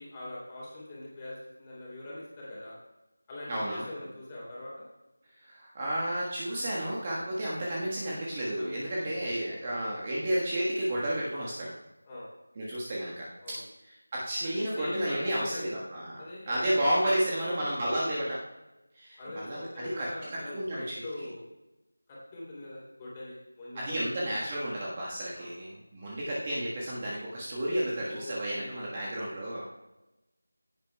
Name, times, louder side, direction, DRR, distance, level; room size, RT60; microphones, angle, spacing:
voice 1, 0.0-2.7 3.3-4.7 8.6-10.0 12.0-12.3 13.4-13.7 14.6-15.7 16.1-18.0 19.2-21.4 22.1-24.0 25.3-25.5 28.0-29.6, left 1 dB, 15° left, -6 dB, 3.2 m, -42 dB
voice 2, 3.5-3.8 5.4-11.7 12.6-13.3 13.8-18.4 18.9-21.0 23.7-29.6, right 1 dB, 20° right, -6 dB, 1.5 m, -32 dB
16.0 x 10.0 x 2.3 m, 1.0 s
figure-of-eight pair, 170°, 0 cm